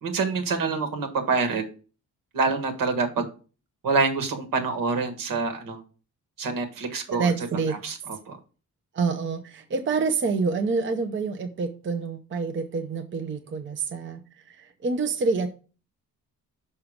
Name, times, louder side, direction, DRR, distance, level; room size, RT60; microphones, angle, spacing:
voice 1, 0.0-1.6 2.3-3.3 3.8-5.8 6.4-7.3 7.7-8.4, right 4 dB, 75° right, 1.7 m, -26 dB
voice 2, 7.1-7.8 8.9-14.2 14.5-15.5, right 4 dB, 35° right, 0.6 m, -27 dB
5.9 x 5.5 x 5.0 m
wide cardioid pair, 165°, 33 cm